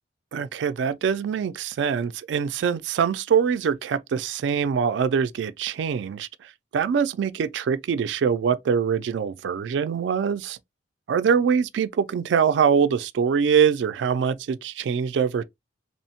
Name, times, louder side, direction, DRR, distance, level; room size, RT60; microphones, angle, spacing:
voice 1, 0.3-10.6 11.1-15.5, right 7 dB, 80° right, 0.3 m, -23 dB
2.9 x 2.0 x 2.8 m
head